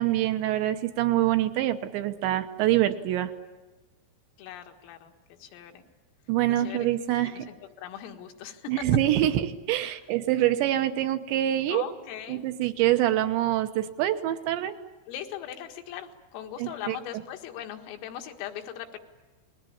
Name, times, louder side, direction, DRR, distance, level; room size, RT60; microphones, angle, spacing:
voice 1, 0.0-3.3 6.3-7.5 8.7-11.8 12.3-14.8 16.6-17.0, right 13 dB, 75° right, 9 dB, 3.0 m, -25 dB
voice 2, 4.4-5.1 5.4-5.8 6.5-6.9 7.3-8.7 11.7-12.4 15.1-19.0, left 10 dB, 80° left, 4 dB, 4.4 m, -40 dB
29.5 x 21.0 x 8.6 m, 1.2 s
omnidirectional pair, 5.9 m